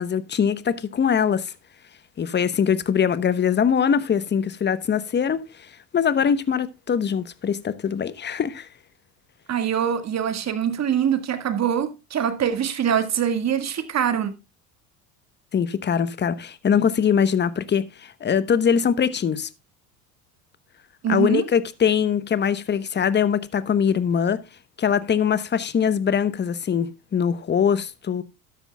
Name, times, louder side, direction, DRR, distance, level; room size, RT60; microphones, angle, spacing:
voice 1, 0.0-1.5 2.2-8.7 15.5-19.5 21.1-24.4 24.8-28.2, left 7 dB, 25° left, 1.0 m, -22 dB
voice 2, 9.5-14.3 21.0-21.5, right 8 dB, 35° right, 1.9 m, -24 dB
12.5 x 10.5 x 2.3 m
hypercardioid pair, 80°, 45 cm